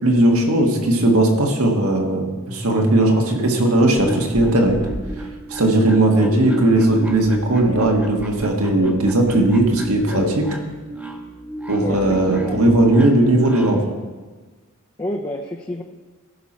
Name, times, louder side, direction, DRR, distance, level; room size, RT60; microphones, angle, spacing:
voice 1, 0.0-4.8 5.5-10.5 11.7-13.9, right 1 dB, 85° right, 1 dB, 1.6 m, -17 dB
sound 1, 3.7-13.9, right 1 dB, 10° right, 0.8 m, -33 dB
sound 2, 6.3-7.1 7.6-7.9 8.5-9.0 9.8-10.5, left 3 dB, 75° left, 0.8 m, -32 dB
voice 2, 11.8-12.6 15.0-15.8, left 1 dB, 20° left, 0 dB, 0.5 m, -29 dB
15.0 x 5.9 x 4.3 m, 1.4 s
head